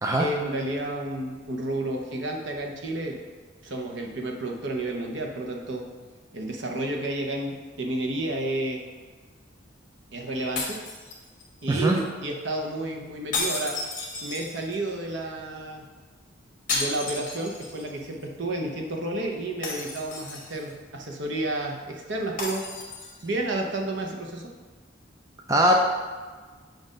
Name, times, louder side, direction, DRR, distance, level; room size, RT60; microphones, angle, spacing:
voice 1, 0.2-3.1 3.6-5.8 6.3-8.8 10.1-10.8 11.6-13.7 14.2-15.8 16.7-22.6 23.2-24.5, right 1 dB, 60° right, 1 dB, 0.8 m, -31 dB
sound 1, 10.6-11.6 13.3-14.9 16.7-17.9 18.2-18.3 19.6-20.7 22.4-23.3, left 3 dB, 45° left, 1.2 m, -33 dB
voice 2, 25.5-25.8, right 1 dB, 15° right, 0 dB, 0.4 m, -20 dB
7.6 x 2.6 x 5.0 m, 1.4 s
head